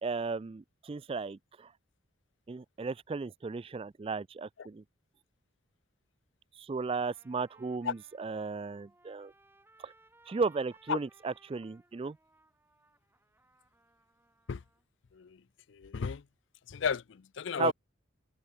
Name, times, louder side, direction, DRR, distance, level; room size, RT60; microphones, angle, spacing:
voice 1, 0.0-1.7 2.5-4.8 6.6-9.3 9.8-9.9 10.3-12.2 17.6-17.7, right 4 dB, 25° right, 0.3 m, -35 dB
Trumpet, 6.8-14.8, right 2 dB, 10° right, 6.4 m, -65 dB
voice 2, 15.7-16.2 16.7-17.7, left 6 dB, 60° left, 0.4 m, -33 dB
head